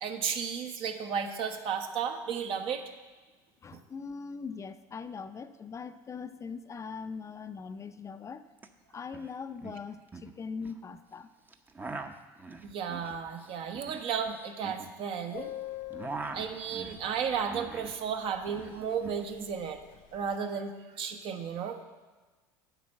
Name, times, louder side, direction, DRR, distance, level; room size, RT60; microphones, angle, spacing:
voice 1, 0.0-2.8 12.6-15.5 16.3-19.8 20.1-21.8, right 7 dB, 55° right, 6 dB, 1.1 m, -33 dB
voice 2, 3.6-8.5 8.9-11.3, left 5 dB, 25° left, 10 dB, 0.5 m, -41 dB
sound 1, 8.6-8.7 8.9-9.3 9.6-10.8 11.5-15.4 15.7-18.0 18.3-19.2, right 3 dB, 15° right, 0.7 m, -43 dB
Subway metro underground, 15.3-17.5 17.8-17.9 18.1-18.4 18.6-19.1 19.3-20.4, left 14 dB, 65° left, 0.7 m, -43 dB
8.0 x 5.2 x 7.6 m, 1.3 s
hypercardioid pair, 85°, 11 cm